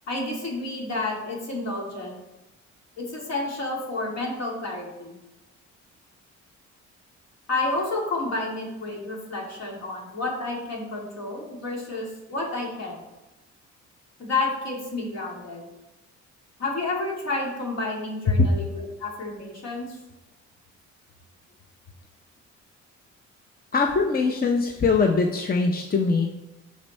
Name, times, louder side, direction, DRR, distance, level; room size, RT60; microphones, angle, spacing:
voice 1, 0.1-2.2 3.0-5.2 7.5-13.0 14.2-15.7 16.6-20.0, left 2 dB, 60° left, -2 dB, 2.5 m, -30 dB
voice 2, 23.7-26.3, left 4 dB, 30° left, 4 dB, 0.7 m, -22 dB
6.3 x 5.2 x 4.1 m, 1.0 s
cardioid pair, 90°, 30 cm